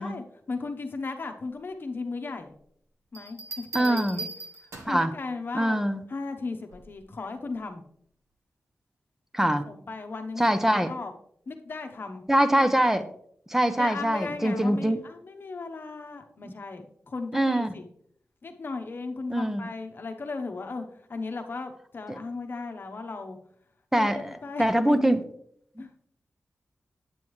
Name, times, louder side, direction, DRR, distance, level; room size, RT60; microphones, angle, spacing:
voice 1, 0.0-2.6 3.1-4.3 4.8-5.8 6.1-7.8 9.4-11.1 11.5-12.2 13.8-17.9 18.4-23.4 23.9-25.2 25.8-25.9, left 3 dB, 45° left, 6 dB, 0.9 m, -36 dB
Bell, 3.1-5.1 6.7-7.0, right 3 dB, 80° right, 1.2 m, -39 dB
voice 2, 3.7-4.2 4.9-5.1 5.5-6.0 9.3-9.6 10.4-10.9 12.3-13.1 13.5-15.0 16.4-16.5 17.3-17.7 19.3-19.7 22.1-22.2 23.9-25.2, right 1 dB, 10° right, 10 dB, 0.5 m, -23 dB
9.0 x 8.5 x 3.1 m, 0.67 s
wide cardioid pair, 160°, 5 cm